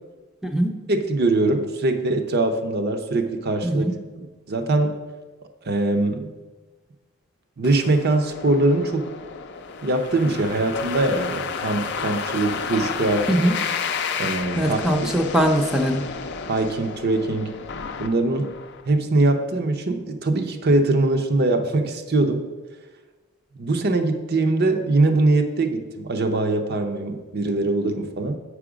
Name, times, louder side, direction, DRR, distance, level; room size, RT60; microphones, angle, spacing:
voice 1, 0.9-3.8 4.2-5.0 5.7-6.3 7.6-9.1 9.8-13.3 14.2-14.8 16.5-17.5 18.0-18.5 18.9-22.5 23.6-28.4, right 2 dB, 50° right, 6 dB, 0.7 m, -22 dB
voice 2, 3.6-3.9 13.3-13.5 14.6-16.0, right 1 dB, 5° right, 3 dB, 0.5 m, -21 dB
sound 1, 7.6-18.8, left 6 dB, 55° left, 0.5 m, -31 dB
7.7 x 4.9 x 5.0 m, 1.3 s
head